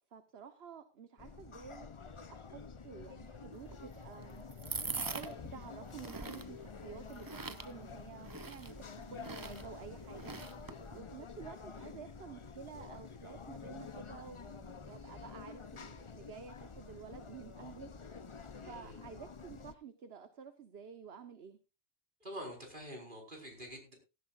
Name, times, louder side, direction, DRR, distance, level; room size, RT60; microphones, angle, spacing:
voice 1, 0.1-10.6 10.9-18.2 18.6-21.6, right 7 dB, 65° right, 9 dB, 1.3 m, -51 dB
sound 1, 1.2-19.7, left 5 dB, 30° left, 0.6 m, -49 dB
sound 2, 3.5-11.0, right 4 dB, 30° right, 0.4 m, -45 dB
voice 2, 18.6-19.0 22.2-23.9, equal, 45° right, 1 dB, 5.2 m, -46 dB
17.0 x 14.0 x 2.5 m, 0.29 s
omnidirectional pair, 1.2 m